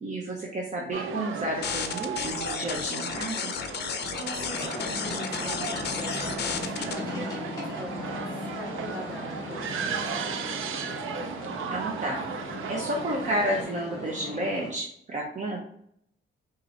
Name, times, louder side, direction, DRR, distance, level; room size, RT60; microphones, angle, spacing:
voice 1, 0.0-3.5 11.7-12.2 12.7-15.6, right 1 dB, 35° right, -2 dB, 0.7 m, -31 dB
sound 1, 0.9-13.6, right 6 dB, 80° right, 0.5 m, -36 dB
sound 2, 1.6-6.9, left 7 dB, 55° left, 0.5 m, -33 dB
voice 2, 4.1-8.3 8.5-10.5, equal, 10° right, -4 dB, 1.6 m, -42 dB
sound 3, 4.5-14.7, left 2 dB, 20° left, 1.9 m, -38 dB
4.5 x 2.6 x 3.9 m, 0.68 s
wide cardioid pair, 140°, 20 cm